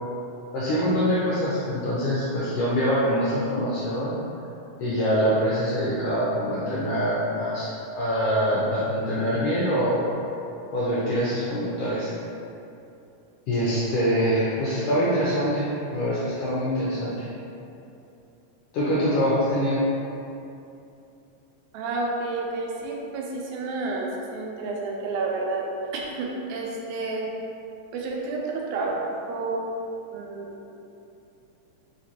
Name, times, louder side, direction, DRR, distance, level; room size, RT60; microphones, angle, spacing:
voice 1, 0.5-4.1 4.8-7.7 8.0-10.1 10.7-12.1 13.5-15.7 15.9-17.3 18.7-19.8, equal, 90° left, -8 dB, 1.3 m, -24 dB
voice 2, 21.7-25.6 25.9-27.2 27.9-29.7 30.1-30.8, right 3 dB, 90° right, -2 dB, 2.0 m, -30 dB
5.0 x 2.9 x 2.8 m, 2.8 s
omnidirectional pair, 3.4 m